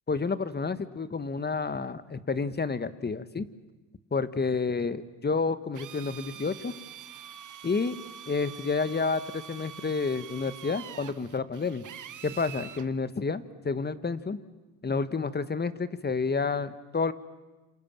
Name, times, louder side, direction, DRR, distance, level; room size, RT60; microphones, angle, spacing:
voice 1, 0.1-3.5 4.1-6.7 7.6-8.0 8.3-11.9 12.2-14.4 14.8-17.1, left 4 dB, 25° left, 13 dB, 1.5 m, -30 dB
Drill, 5.7-12.9, right 10 dB, 55° right, 1.3 m, -45 dB
28.0 x 27.0 x 7.4 m, 1.2 s
supercardioid pair, 70°, 38 cm